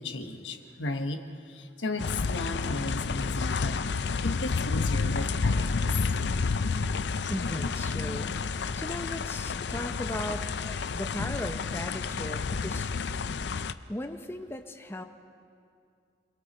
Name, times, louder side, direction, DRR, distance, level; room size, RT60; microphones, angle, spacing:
voice 1, 0.0-3.9 4.2-6.0, left 2 dB, 85° left, 6 dB, 1.3 m, -35 dB
sound 1, 2.0-13.7, left 4 dB, 65° left, 0.5 m, -30 dB
voice 2, 7.3-8.4 8.7-12.9 13.9-15.0, left 1 dB, 15° left, 6 dB, 0.7 m, -37 dB
28.0 x 22.0 x 4.3 m, 2.4 s
head